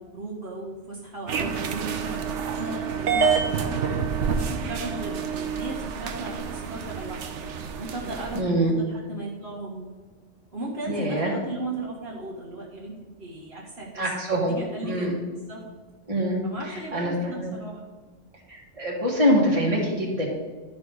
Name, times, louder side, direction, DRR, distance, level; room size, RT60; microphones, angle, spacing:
voice 1, 0.0-7.5 7.8-9.9 10.5-15.7 16.4-17.8, right 2 dB, 55° right, -5 dB, 1.9 m, -37 dB
sound 1, 1.3-8.4, right 6 dB, 70° right, 1.0 m, -28 dB
voice 2, 8.4-8.7 10.9-11.3 14.0-14.5 14.8-15.2 16.1-17.5 18.5-20.3, equal, 25° right, -3 dB, 2.0 m, -24 dB
12.0 x 5.4 x 4.7 m, 1.3 s
omnidirectional pair, 1.3 m